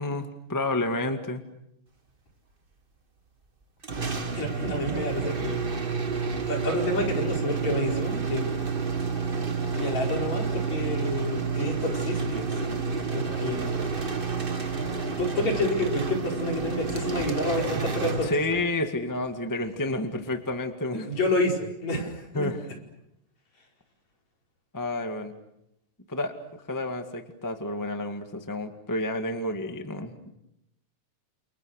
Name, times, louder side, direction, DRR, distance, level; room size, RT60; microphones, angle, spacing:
voice 1, 0.0-1.4 18.2-21.1 22.3-22.6 24.7-25.3 26.1-30.1, left 2 dB, 10° left, 6 dB, 1.2 m, -30 dB
sound 1, 3.8-18.8, right 5 dB, 45° right, 0.6 m, -30 dB
voice 2, 4.3-5.6 6.5-8.5 9.8-12.8 13.1-13.7 14.6-14.8 15.2-18.3 21.0-22.5, left 1 dB, 55° left, 1 dB, 6.4 m, -29 dB
30.0 x 29.0 x 6.6 m, 0.81 s
omnidirectional pair, 3.8 m